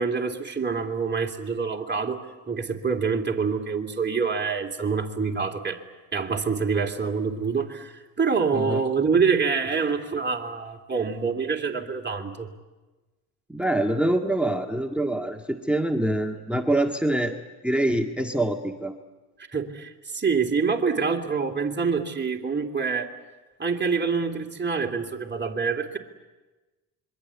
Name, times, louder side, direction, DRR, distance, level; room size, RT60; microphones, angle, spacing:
voice 1, 0.0-2.2 2.5-5.8 6.1-12.5 19.5-23.1 23.6-26.0, right 5 dB, 25° right, 1 dB, 3.0 m, -26 dB
voice 2, 13.5-17.3 17.6-19.0, right 1 dB, ahead, 5 dB, 1.8 m, -25 dB
26.5 x 23.0 x 8.4 m, 1.2 s
supercardioid pair, 55°, 45 cm